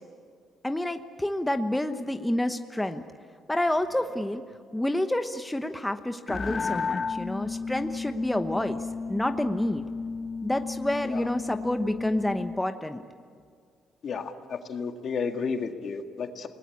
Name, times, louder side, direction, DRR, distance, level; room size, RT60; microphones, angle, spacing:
voice 1, 0.6-3.0 3.5-4.4 4.7-9.9 10.4-13.0, left 1 dB, 10° left, 7 dB, 1.0 m, -29 dB
sound 1, 6.3-12.6, left 4 dB, 40° left, 0.7 m, -33 dB
voice 2, 14.0-16.5, left 5 dB, 60° left, 5 dB, 1.9 m, -32 dB
29.0 x 19.5 x 8.6 m, 2.1 s
cardioid pair, 90°, 0 cm